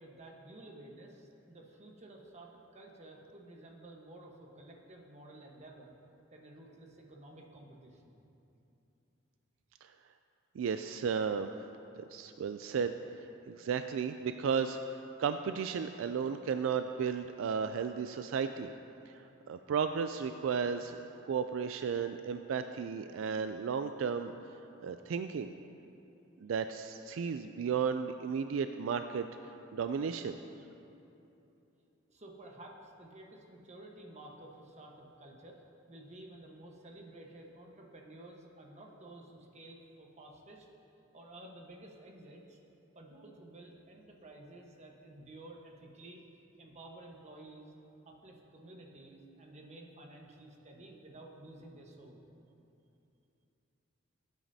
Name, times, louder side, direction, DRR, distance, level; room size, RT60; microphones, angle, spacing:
voice 1, 0.0-5.9 6.3-8.2 32.1-35.6 35.9-40.7 41.1-42.6 42.9-46.2 46.6-47.7 48.0-52.3, right 1 dB, 35° right, 0 dB, 1.2 m, -52 dB
voice 2, 10.6-11.5 12.1-12.9 13.5-14.8 15.2-18.7 19.1-19.2 19.5-21.0 21.3-24.3 24.8-25.5 26.4-29.3 29.7-30.4, right 6 dB, 75° right, 9 dB, 0.3 m, -34 dB
17.5 x 9.0 x 2.8 m, 2.9 s
head